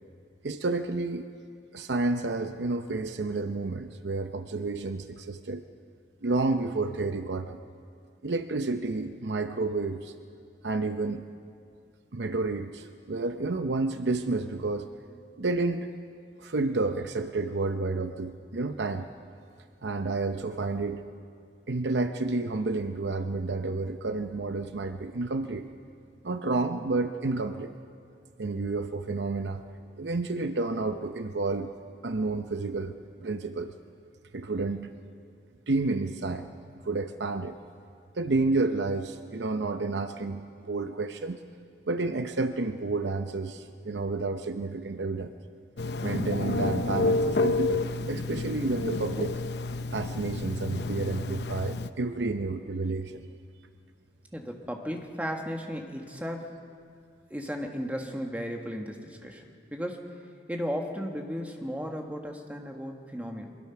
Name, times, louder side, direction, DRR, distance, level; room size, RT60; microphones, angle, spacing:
voice 1, 0.4-1.3 1.7-5.6 6.2-7.6 8.2-10.1 10.6-11.3 12.1-14.9 15.4-15.9 16.4-19.1 19.8-21.0 21.7-25.7 26.2-27.7 28.4-29.6 30.0-31.7 32.0-32.9 33.2-33.7 34.3-34.9 35.7-36.5 36.8-37.6 38.2-41.4 41.9-45.3 46.0-49.4 49.9-53.2, right 3 dB, 85° right, 8 dB, 0.7 m, -30 dB
Telephone, 45.8-51.9, left 2 dB, 70° left, 0.7 m, -29 dB
voice 2, 54.3-56.5 57.3-59.4 59.7-60.2 60.5-63.5, equal, 10° right, 2 dB, 1.6 m, -35 dB
23.5 x 20.0 x 5.8 m, 2.3 s
head